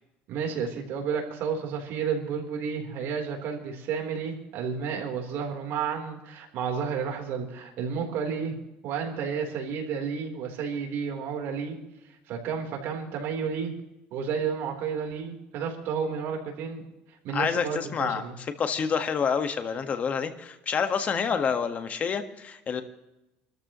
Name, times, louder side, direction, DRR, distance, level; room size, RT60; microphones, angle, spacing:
voice 1, 0.3-8.6 8.8-11.8 12.3-13.7 14.1-16.8 17.2-18.4, right 6 dB, 65° right, 2 dB, 3.8 m, -31 dB
voice 2, 17.3-22.8, left 6 dB, 35° left, 8 dB, 1.6 m, -28 dB
27.5 x 13.5 x 3.1 m, 0.97 s
cardioid pair, 120°, 4 cm